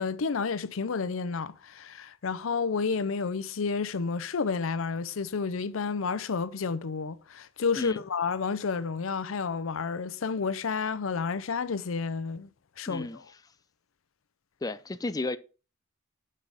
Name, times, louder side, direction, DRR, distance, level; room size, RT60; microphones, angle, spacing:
voice 1, 0.0-12.5 12.8-13.1, left 5 dB, 85° left, 0.6 m, -30 dB
voice 2, 12.9-13.4 14.6-15.4, left 2 dB, 20° left, 0.4 m, -33 dB
8.3 x 5.6 x 4.9 m
head